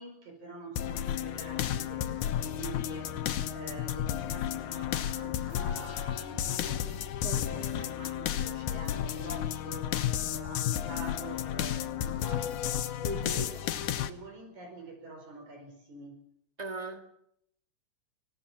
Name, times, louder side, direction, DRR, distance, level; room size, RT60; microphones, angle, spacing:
voice 1, 0.0-12.9 13.3-16.2, right 2 dB, 70° right, 6.5 m, -47 dB
sound 1, 0.8-14.1, left 10 dB, 80° left, 2.5 m, -32 dB
voice 2, 7.2-7.9 13.0-13.5 16.6-17.0, right 1 dB, 15° right, 1.8 m, -39 dB
25.5 x 17.0 x 7.4 m
omnidirectional pair, 3.5 m